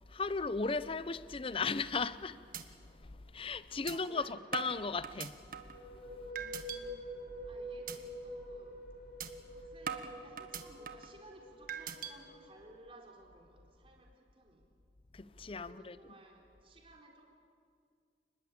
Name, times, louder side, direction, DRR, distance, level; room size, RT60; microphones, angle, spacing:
voice 1, 0.1-5.6 15.1-16.0, left 4 dB, 30° left, 0.6 m, -37 dB
sound 1, 1.9-2.2 2.5-2.6 3.0-3.1 3.9-4.0 4.5-5.8 6.3-6.8 7.2-7.4 7.9-8.0 8.4-8.6 9.2-9.3 9.9-11.1 11.7-12.1, right 7 dB, 55° right, 1.5 m, -41 dB
voice 2, 3.9-4.3 6.1-7.0 7.4-8.8 9.5-14.6 15.5-17.3, right 1 dB, 30° right, 4.1 m, -58 dB
sound 2, 5.4-13.0, equal, 65° left, 6.9 m, -47 dB
29.5 x 20.5 x 8.7 m
head